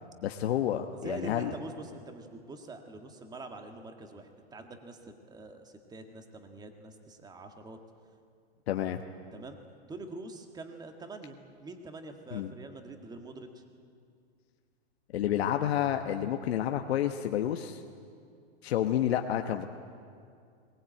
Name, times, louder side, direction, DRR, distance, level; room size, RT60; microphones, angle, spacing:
voice 1, 0.2-1.5 8.7-9.0 12.3-12.5 15.1-17.8 18.6-19.7, left 11 dB, 70° left, 5 dB, 1.1 m, -29 dB
voice 2, 0.9-7.8 9.3-9.6 9.9-13.6, right 2 dB, 10° right, 5 dB, 1.7 m, -45 dB
21.0 x 19.0 x 9.0 m, 2.3 s
hypercardioid pair, 135°, 32 cm